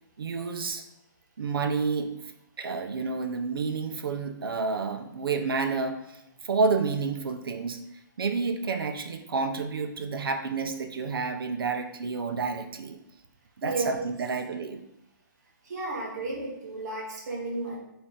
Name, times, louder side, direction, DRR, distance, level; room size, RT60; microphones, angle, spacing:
voice 1, 0.2-0.8 1.4-2.1 2.6-6.0 6.5-7.8 8.2-13.0 13.6-14.8, right 4 dB, 85° right, 6 dB, 0.7 m, -29 dB
voice 2, 13.6-14.1 15.6-17.8, right 2 dB, 50° right, -4 dB, 1.6 m, -33 dB
3.5 x 3.5 x 4.1 m, 0.87 s
hypercardioid pair, 175°, 12 cm